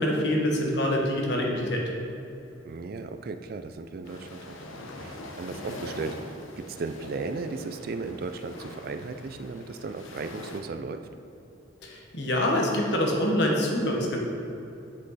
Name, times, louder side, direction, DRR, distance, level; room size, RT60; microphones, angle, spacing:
voice 1, 0.0-1.8 11.8-14.2, left 1 dB, 55° left, -1 dB, 1.2 m, -25 dB
voice 2, 2.6-4.6 5.0-6.2 6.6-11.0, right 4 dB, 45° right, 8 dB, 0.3 m, -35 dB
sound 1, 4.0-10.6, left 1 dB, 85° left, 0.9 m, -42 dB
7.5 x 6.7 x 4.1 m, 2.8 s
head